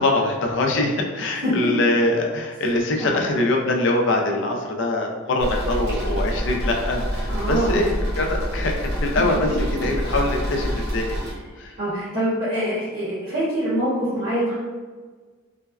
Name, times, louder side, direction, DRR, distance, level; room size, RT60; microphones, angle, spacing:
voice 1, 0.0-7.9 8.2-9.5 9.8-11.2 11.6-11.7, left 2 dB, 60° left, 1 dB, 0.4 m, -23 dB
sound 1, 5.4-11.3, equal, 50° right, 0.6 m, -26 dB
voice 2, 7.2-7.8 11.8-14.5, equal, 70° right, -12 dB, 1.3 m, -24 dB
3.2 x 2.0 x 2.3 m, 1.4 s
head